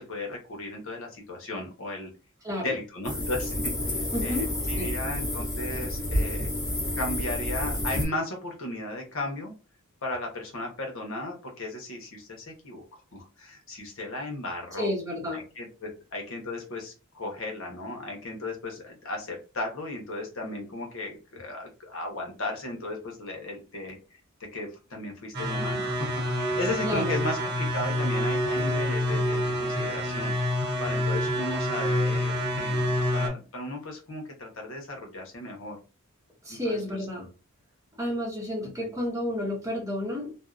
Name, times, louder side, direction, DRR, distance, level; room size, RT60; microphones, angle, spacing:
voice 1, 0.0-2.1 2.6-3.7 4.2-6.5 7.0-9.5 10.0-12.8 13.1-14.9 15.3-24.0 24.5-30.4 30.8-35.8 36.5-36.8 38.6-38.9, left 2 dB, 65° left, 1 dB, 0.9 m, -35 dB
voice 2, 2.4-2.8 4.1-4.9 14.8-15.5 26.8-27.2 36.4-37.3 38.0-40.4, left 1 dB, 15° right, -1 dB, 0.7 m, -31 dB
sound 1, 3.0-8.0, left 1 dB, 15° left, 1.1 m, -29 dB
sound 2, 25.3-33.3, equal, 50° right, 0.7 m, -27 dB
2.6 x 2.1 x 2.3 m, 0.32 s
head